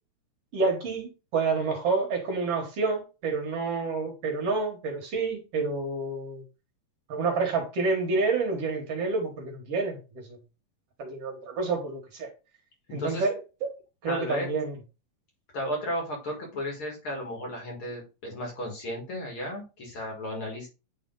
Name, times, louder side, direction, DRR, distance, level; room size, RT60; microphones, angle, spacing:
voice 1, 0.5-6.4 7.1-10.4 11.0-12.3 12.9-13.7 14.0-14.8, right 4 dB, 60° right, 2.3 m, -29 dB
voice 2, 14.1-14.5 15.5-20.7, equal, 50° left, 2.5 m, -34 dB
9.1 x 3.3 x 3.9 m
omnidirectional pair, 3.4 m